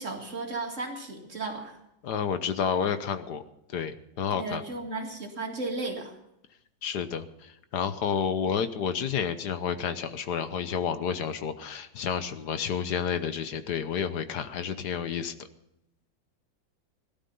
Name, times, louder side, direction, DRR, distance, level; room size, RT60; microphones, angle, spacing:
voice 1, 0.0-1.8 4.3-6.1, right 3 dB, 40° right, 2 dB, 2.5 m, -35 dB
voice 2, 2.0-3.4 3.7-4.6 6.8-15.3, left 7 dB, 60° left, 11 dB, 1.3 m, -30 dB
17.5 x 12.5 x 5.5 m, 0.82 s
omnidirectional pair, 2.1 m